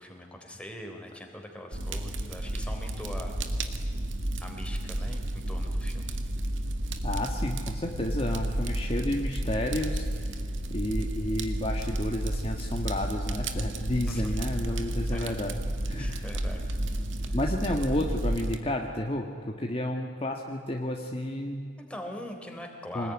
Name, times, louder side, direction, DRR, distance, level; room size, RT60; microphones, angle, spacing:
voice 1, 0.0-3.4 4.4-6.1 14.1-14.3 15.1-15.3 16.0-16.7 17.8-17.9 21.9-23.1, left 1 dB, 5° left, 2 dB, 3.6 m, -42 dB
Fire, 1.7-18.6, right 1 dB, 70° right, 2.0 m, -31 dB
voice 2, 7.0-10.1 10.7-15.5 15.8-16.2 17.3-21.7 22.9-23.1, left 1 dB, 30° left, 1 dB, 1.6 m, -31 dB
25.5 x 20.5 x 9.9 m, 2.3 s
head